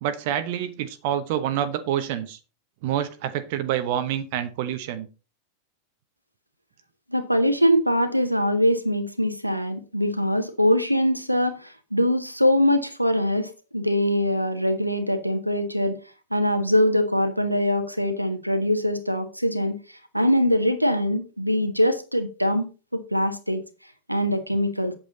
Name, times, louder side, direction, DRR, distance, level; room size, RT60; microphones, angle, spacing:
voice 1, 0.0-2.4 2.8-5.1, right 10 dB, 50° right, 1.0 m, -27 dB
voice 2, 7.1-16.0 16.3-19.8 20.1-23.6 24.1-24.9, equal, 90° right, 1.3 m, -23 dB
8.6 x 8.3 x 4.1 m
figure-of-eight pair, 90°, 0 cm